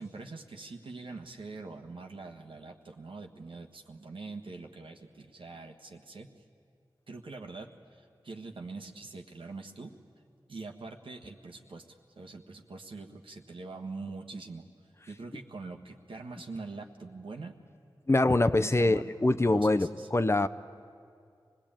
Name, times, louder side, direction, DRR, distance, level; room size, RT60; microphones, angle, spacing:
voice 1, 0.0-6.3 7.1-10.0 10.5-14.7 15.1-17.6 18.6-19.1 19.5-20.1, right 3 dB, 80° right, 3 dB, 1.5 m, -44 dB
voice 2, 18.1-20.5, left 2 dB, 30° left, 10 dB, 0.7 m, -24 dB
25.5 x 19.0 x 8.9 m, 2.3 s
cardioid pair, 40°, 9 cm